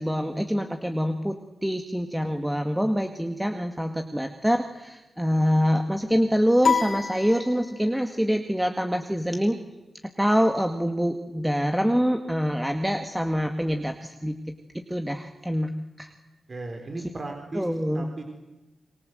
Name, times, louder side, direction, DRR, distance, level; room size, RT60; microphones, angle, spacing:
voice 1, 0.0-9.6 10.2-14.4 14.7-15.7 16.0-16.1 17.5-18.1, equal, 5° right, 5 dB, 1.9 m, -25 dB
sound 1, 6.6-8.1, left 5 dB, 70° left, 3.7 m, -27 dB
voice 2, 16.5-17.7 17.9-18.2, right 2 dB, 45° right, 3 dB, 3.9 m, -36 dB
27.5 x 23.0 x 7.9 m, 1.0 s
cardioid pair, 65°, 0 cm